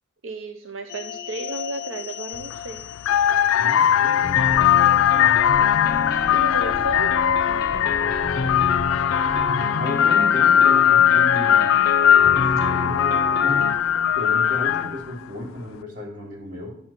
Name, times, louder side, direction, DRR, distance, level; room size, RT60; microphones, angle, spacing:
voice 1, 0.2-2.8 6.3-7.2, right 3 dB, 80° right, 6 dB, 0.7 m, -33 dB
sound 1, 0.9-13.8, left 4 dB, 50° left, 0.6 m, -29 dB
sound 2, 2.3-2.6 3.0-15.1, left 10 dB, 90° left, 0.3 m, -19 dB
voice 2, 3.6-5.4 9.2-11.7 12.0-16.7, left 1 dB, 40° right, -4 dB, 3.3 m, -34 dB
sound 3, 4.4-9.5, left 1 dB, 10° left, 0.6 m, -40 dB
10.0 x 6.9 x 4.4 m, 0.69 s
head